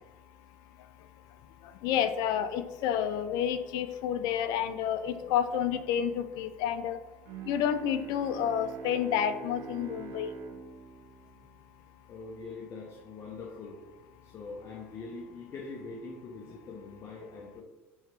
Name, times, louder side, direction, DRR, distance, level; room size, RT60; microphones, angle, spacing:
voice 1, 1.8-7.0 7.5-10.3, left 9 dB, 70° left, 10 dB, 0.4 m, -29 dB
Bowed string instrument, 7.3-12.4, right 7 dB, 75° right, 0.5 m, -45 dB
voice 2, 12.1-13.8 14.2-17.6, left 3 dB, 40° left, -1 dB, 0.7 m, -43 dB
4.5 x 2.9 x 3.3 m, 1.1 s
supercardioid pair, 105°, 7 cm